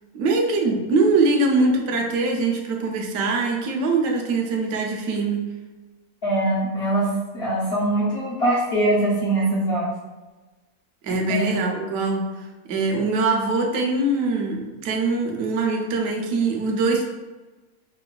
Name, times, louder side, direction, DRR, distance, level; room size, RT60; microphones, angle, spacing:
voice 1, 0.1-5.4 11.0-17.3, right 3 dB, 65° right, 1 dB, 0.9 m, -23 dB
voice 2, 6.2-9.9 11.3-11.5, right 1 dB, 55° left, -8 dB, 0.7 m, -22 dB
4.4 x 2.2 x 2.3 m, 1.2 s
omnidirectional pair, 1.7 m